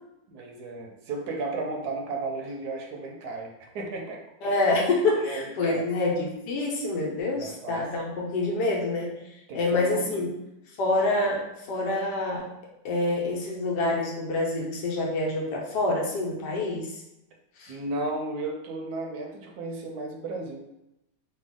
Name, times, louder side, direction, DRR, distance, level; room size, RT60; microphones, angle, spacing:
voice 1, 0.3-4.6 5.2-5.9 7.3-8.1 9.5-10.0 17.7-20.6, right 2 dB, 75° right, 1 dB, 1.1 m, -34 dB
voice 2, 4.4-10.3 10.8-12.5 12.8-17.0 17.6-17.8, left 2 dB, 85° left, -1 dB, 1.4 m, -27 dB
3.3 x 2.2 x 3.5 m, 0.89 s
omnidirectional pair, 1.8 m